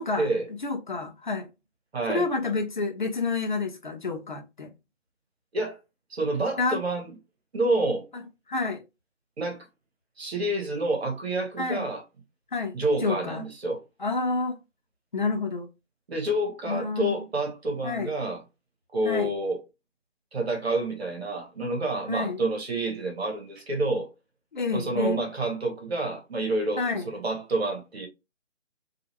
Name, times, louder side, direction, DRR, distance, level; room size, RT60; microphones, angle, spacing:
voice 1, 0.6-1.5 2.1-4.7 6.6-6.8 8.5-8.8 11.6-11.9 12.5-12.8 13.0-13.4 14.0-14.6 15.1-15.7 16.7-17.2 17.8-18.1 19.0-19.3 22.1-22.4 24.5-25.2 26.8-27.1, left 4 dB, 40° left, 0.5 m, -29 dB
voice 2, 1.9-2.3 5.5-5.8 6.1-7.1 7.5-8.1 9.4-9.7 10.2-12.0 12.7-13.8 16.1-18.4 18.9-19.6 20.3-24.1 24.7-28.1, right 2 dB, 55° right, 1.2 m, -28 dB
2.7 x 2.4 x 2.9 m
figure-of-eight pair, 155°, 37 cm